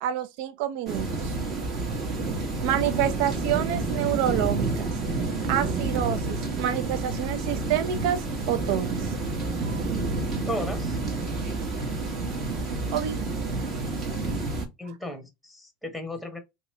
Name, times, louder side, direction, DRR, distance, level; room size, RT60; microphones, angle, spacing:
voice 1, 0.0-1.3 2.6-4.9 5.5-8.2 8.5-9.1 9.6-9.8 12.9-13.2, right 10 dB, 60° right, 0.6 m, -28 dB
sound 1, 0.9-14.7, right 3 dB, 40° right, 1.4 m, -29 dB
voice 2, 10.5-11.0 14.8-16.4, left 1 dB, ahead, 1.0 m, -34 dB
3.0 x 3.0 x 3.2 m
supercardioid pair, 125°, 0 cm